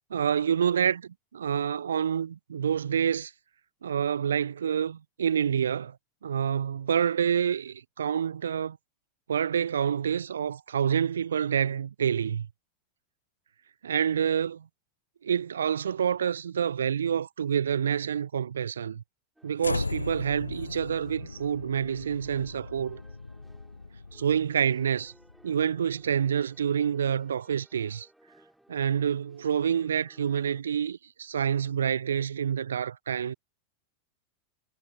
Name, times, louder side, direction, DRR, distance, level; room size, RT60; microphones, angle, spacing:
voice 1, 0.1-3.3 3.8-6.0 6.2-8.8 9.3-12.5 13.8-14.7 15.2-19.0 19.4-23.0 24.1-25.1 25.4-28.1 28.7-33.3, right 8 dB, 65° right, 0.3 m, -27 dB
sound 1, 19.4-30.6, right 1 dB, ahead, 5.0 m, -60 dB
sound 2, 19.6-25.9, left 3 dB, 80° left, 0.4 m, -38 dB
figure-of-eight pair, 90°, 0 cm